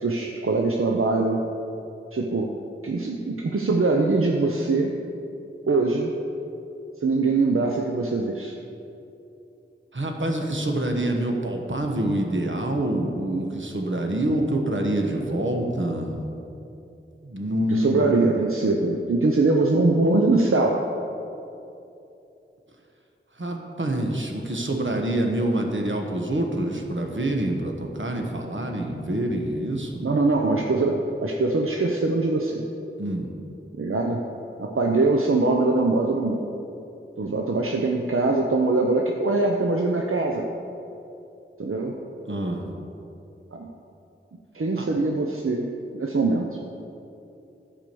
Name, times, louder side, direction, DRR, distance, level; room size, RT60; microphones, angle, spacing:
voice 1, 0.0-1.5 2.1-2.5 2.8-4.9 5.7-6.1 7.0-8.5 17.7-20.8 30.0-32.7 33.8-34.2 34.6-36.5 37.2-40.5 41.6-41.9 43.5-43.7 44.5-45.7 45.9-46.5, right 3 dB, 80° right, 0 dB, 0.7 m, -22 dB
voice 2, 9.9-16.2 17.2-18.1 23.3-29.9 33.0-33.3 42.2-42.7 44.8-44.9, right 1 dB, 65° right, 2 dB, 1.3 m, -26 dB
12.0 x 4.9 x 6.9 m, 2.8 s
wide cardioid pair, 40°, 21 cm